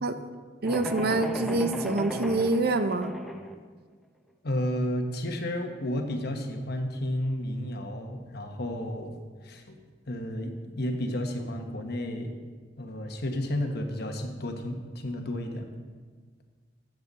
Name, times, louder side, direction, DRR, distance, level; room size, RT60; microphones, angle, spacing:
sound 1, 0.6-3.5, equal, ahead, 0.7 m, -35 dB
voice 1, 0.6-3.1, right 2 dB, 60° right, 9 dB, 0.7 m, -26 dB
voice 2, 4.4-9.1 9.4-9.8 10.1-12.3 12.8-15.7, left 1 dB, 60° left, 4 dB, 1.2 m, -32 dB
12.5 x 7.9 x 4.1 m, 1.5 s
head